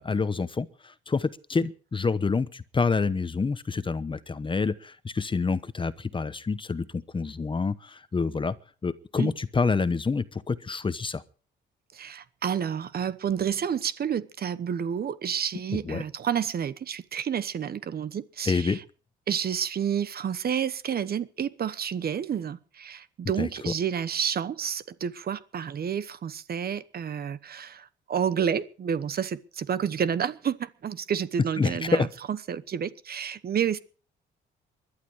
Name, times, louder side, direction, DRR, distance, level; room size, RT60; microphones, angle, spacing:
voice 1, 0.0-8.5 8.8-11.2 15.7-16.0 18.4-18.8 23.4-23.7 31.6-32.1, left 4 dB, 25° left, 0.9 m, -27 dB
voice 2, 11.9-18.8 19.3-33.8, right 8 dB, 50° right, 1.1 m, -30 dB
20.5 x 12.0 x 4.8 m
cardioid pair, 90°, 20 cm